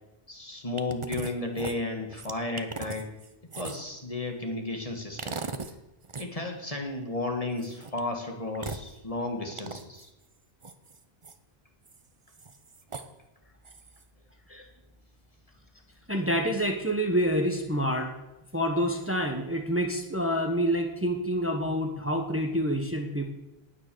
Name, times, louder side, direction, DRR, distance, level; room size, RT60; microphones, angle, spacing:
voice 1, 0.3-3.1 3.5-5.4 6.2-10.1, left 2 dB, 35° left, 3 dB, 1.8 m, -33 dB
sound 1, 0.8-1.3 1.6-3.9 5.2-5.8 6.0-6.3 7.6-8.0 8.5-8.9 9.5-10.0 10.6-11.3 11.9-12.0 12.3-13.1 13.6-14.0, right 4 dB, 30° right, 0.8 m, -38 dB
voice 2, 16.1-18.1 18.5-23.3, equal, 15° right, 3 dB, 1.4 m, -27 dB
18.5 x 6.5 x 6.9 m, 0.97 s
omnidirectional pair, 1.0 m